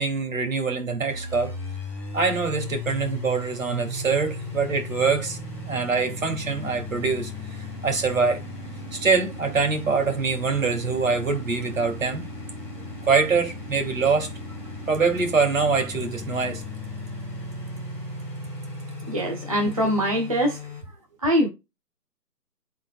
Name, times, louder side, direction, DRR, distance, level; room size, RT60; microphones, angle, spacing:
voice 1, 0.0-1.5 2.1-5.4 5.7-7.3 7.8-8.4 8.9-12.2 13.1-14.3 14.9-16.6, right 4 dB, 55° right, 2.9 m, -24 dB
sound 1, 1.1-20.8, left 1 dB, 5° left, 3.5 m, -36 dB
voice 2, 19.1-20.6 21.2-21.5, equal, 25° right, 0.7 m, -23 dB
11.5 x 4.2 x 2.4 m
figure-of-eight pair, 160°, 47 cm